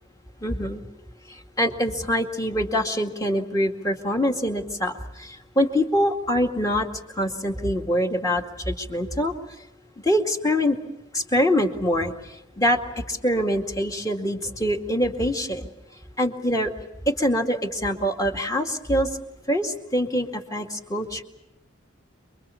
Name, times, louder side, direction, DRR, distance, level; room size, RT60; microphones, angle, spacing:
voice 1, 0.4-0.8 1.3-6.9 7.2-9.3 10.0-10.8 11.1-15.7 16.2-16.7 17.1-19.1 19.5-21.2, equal, 15° left, 4 dB, 2.2 m, -24 dB
29.0 x 22.5 x 7.1 m, 0.89 s
head